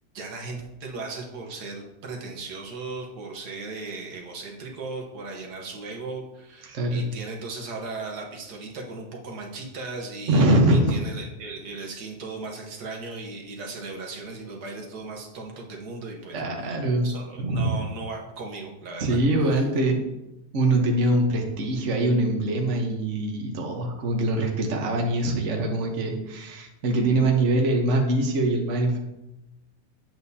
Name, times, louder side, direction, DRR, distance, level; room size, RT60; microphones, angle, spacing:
voice 1, 0.1-19.2, right 3 dB, 80° right, 0 dB, 1.8 m, -37 dB
voice 2, 6.7-7.0 10.3-10.9 16.3-17.1 17.4-17.8 19.0-20.0 20.5-29.0, right 1 dB, 50° right, 1 dB, 1.3 m, -23 dB
8.9 x 7.9 x 2.8 m, 0.93 s
omnidirectional pair, 1.7 m